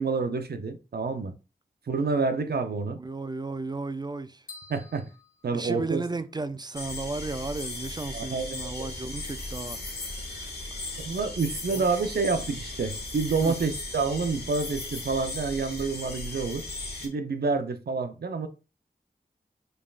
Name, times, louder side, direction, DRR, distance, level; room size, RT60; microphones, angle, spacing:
voice 1, 0.0-1.3 1.9-3.0 4.7-5.1 5.4-6.0 8.1-8.9 11.0-16.7 17.0-18.5, right 4 dB, 75° right, 0.6 m, -28 dB
voice 2, 2.9-4.4 5.5-11.0 11.7-11.9 13.4-13.6, right 3 dB, 25° right, 0.4 m, -35 dB
sound 1, 4.5-6.4, left 4 dB, 60° left, 1.0 m, -50 dB
sound 2, 6.7-17.1, left 2 dB, 85° left, 1.2 m, -37 dB
5.3 x 3.5 x 2.4 m
wide cardioid pair, 55°, 16 cm